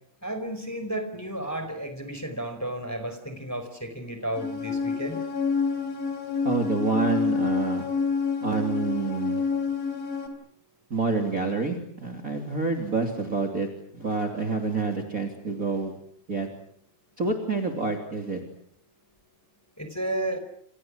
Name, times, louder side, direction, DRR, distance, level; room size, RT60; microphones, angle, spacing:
voice 1, 0.2-5.2 19.8-20.4, right 1 dB, 5° left, 8 dB, 4.3 m, -32 dB
sound 1, 4.4-10.3, left 5 dB, 90° left, 5.4 m, -28 dB
voice 2, 6.4-7.9 8.4-9.4 10.9-13.7 13.9-16.0 16.3-16.5 17.2-18.4, right 4 dB, 25° right, 2 dB, 3.1 m, -28 dB
29.0 x 28.5 x 6.3 m, 0.63 s
omnidirectional pair, 3.9 m